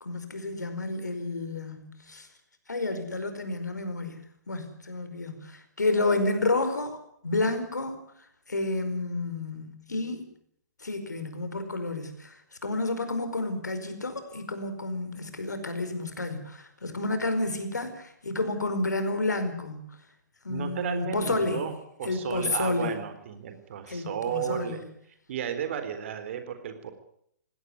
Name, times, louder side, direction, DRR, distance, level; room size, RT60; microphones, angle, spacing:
voice 1, 0.0-2.3 2.7-10.3 10.8-20.0 20.4-21.6 22.0-23.0 23.9-24.8, left 2 dB, 70° left, 9 dB, 4.8 m, -30 dB
voice 2, 20.5-21.7 22.0-24.8 25.3-26.9, right 8 dB, 45° right, 9 dB, 3.9 m, -33 dB
20.5 x 17.0 x 9.6 m, 0.70 s
figure-of-eight pair, 125°, 10 cm